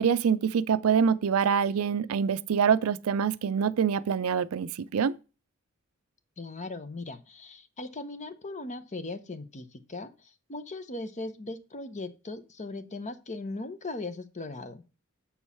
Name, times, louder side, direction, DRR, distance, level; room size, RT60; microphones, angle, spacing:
voice 1, 0.0-5.2, right 7 dB, 85° right, 0.4 m, -25 dB
voice 2, 6.4-14.9, left 2 dB, 35° left, 0.8 m, -39 dB
7.1 x 4.6 x 5.5 m
head